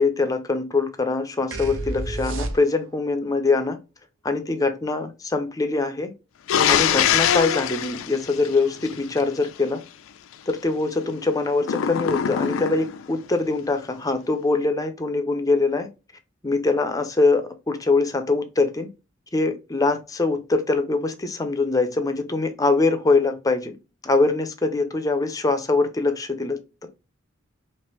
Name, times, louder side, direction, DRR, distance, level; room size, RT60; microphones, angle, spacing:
voice 1, 0.0-3.8 4.2-6.1 6.7-9.8 10.5-15.9 16.4-18.9 19.3-23.7 24.0-26.6, left 3 dB, 15° left, 0.5 m, -23 dB
sound 1, 1.5-3.0, right 2 dB, 70° right, 0.6 m, -30 dB
sound 2, 6.5-9.2 11.6-13.0, left 8 dB, 75° left, 0.4 m, -23 dB
3.3 x 2.9 x 2.9 m
head